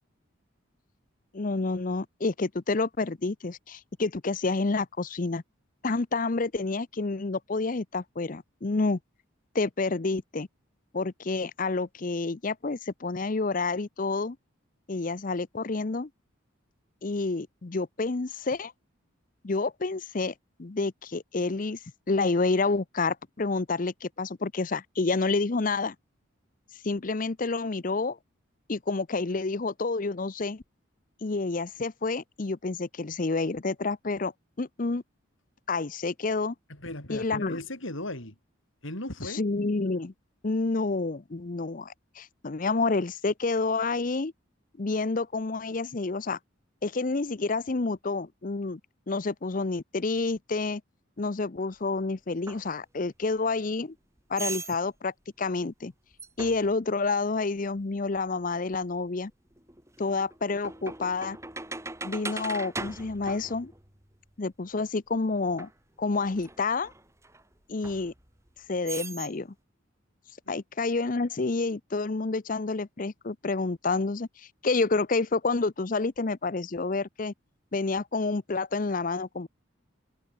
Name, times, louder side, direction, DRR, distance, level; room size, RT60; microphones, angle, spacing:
voice 1, 1.3-5.4 5.8-9.0 9.5-10.5 10.9-14.4 14.9-16.1 17.0-18.7 19.4-20.3 20.6-21.8 22.1-25.9 26.8-28.2 28.7-30.6 31.2-34.3 34.6-35.0 35.7-36.5 37.1-37.6 39.3-40.1 40.4-44.3 44.8-46.4 46.8-48.8 49.1-50.8 51.2-53.9 54.3-55.9 56.4-59.3 60.0-61.4 62.0-63.7 64.4-65.7 66.0-66.9 67.7-68.1 68.7-69.5 70.5-77.3 77.7-79.5, left 3 dB, 40° left, 0.6 m, -29 dB
voice 2, 36.7-38.4 38.8-39.4 70.5-70.6, left 1 dB, 75° left, 6.6 m, -37 dB
sound 1, 52.5-52.6 54.4-54.8 56.2-56.7 58.8-58.9 59.6-64.2 65.6-65.7 66.2-67.4 67.8-68.5 68.8-69.3, right 3 dB, 15° right, 5.7 m, -39 dB
head